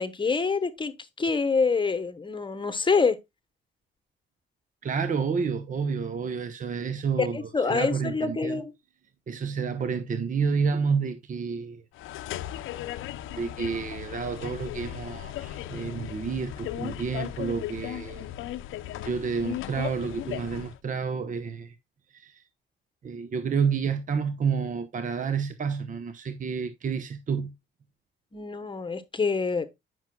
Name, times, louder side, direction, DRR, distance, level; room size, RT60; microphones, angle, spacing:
voice 1, 0.0-3.2 7.2-8.7 28.3-29.7, left 4 dB, 25° left, 1.1 m, -26 dB
voice 2, 4.8-7.4 7.7-8.6 9.3-11.8 13.4-18.3 19.0-21.8 22.1-22.4 23.0-27.5, right 5 dB, 40° right, 0.9 m, -29 dB
sound 1, 11.9-20.8, left 13 dB, 85° left, 0.6 m, -37 dB
9.2 x 6.1 x 2.2 m
cardioid pair, 90°, 20 cm